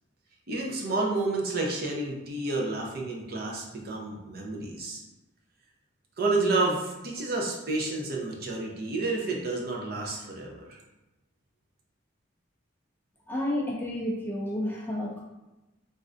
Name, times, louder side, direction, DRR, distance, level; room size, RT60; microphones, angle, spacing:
voice 1, 0.5-5.0 6.2-10.8, right 2 dB, 50° right, -1 dB, 0.6 m, -30 dB
voice 2, 13.3-15.2, left 1 dB, 10° left, -3 dB, 0.4 m, -30 dB
3.2 x 2.5 x 2.5 m, 1.0 s
head